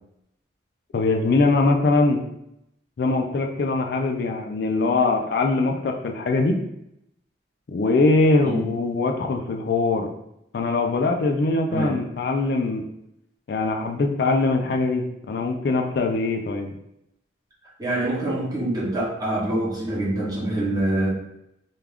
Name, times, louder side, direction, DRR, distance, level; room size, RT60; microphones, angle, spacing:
voice 1, 0.9-2.2 3.0-6.6 7.7-10.1 10.5-12.8 13.5-16.7, left 3 dB, 55° left, 3 dB, 0.3 m, -22 dB
voice 2, 17.8-21.1, right 1 dB, 20° right, -6 dB, 0.7 m, -25 dB
2.3 x 2.3 x 3.4 m, 0.80 s
head